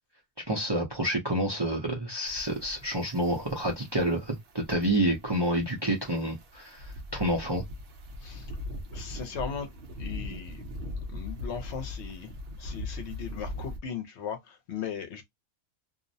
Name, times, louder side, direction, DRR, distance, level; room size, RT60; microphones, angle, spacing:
voice 1, 0.5-7.6, right 1 dB, 30° right, 0.5 m, -28 dB
sound 1, 2.2-13.8, left 1 dB, 60° right, 0.8 m, -40 dB
voice 2, 8.9-9.7 10.0-10.6 11.1-12.3 12.6-15.2, left 7 dB, 70° left, 0.9 m, -37 dB
2.5 x 2.0 x 2.6 m
omnidirectional pair, 1.2 m